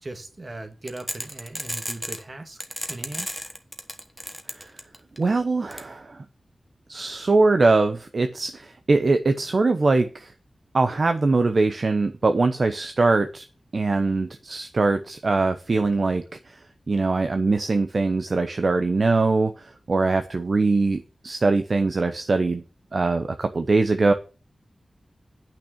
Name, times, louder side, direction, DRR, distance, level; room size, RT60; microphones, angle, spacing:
voice 1, 0.0-2.6 2.9-3.3, right 2 dB, 35° right, 1.9 m, -38 dB
sound 1, 0.9-2.2 2.6-5.2 5.7-5.8, equal, ahead, 1.2 m, -32 dB
voice 2, 5.2-6.2 6.9-10.3 10.7-13.4 13.7-16.6 16.9-22.6 22.9-24.1, right 3 dB, 50° right, 0.7 m, -22 dB
8.9 x 5.9 x 7.2 m
wide cardioid pair, 115°, 0 cm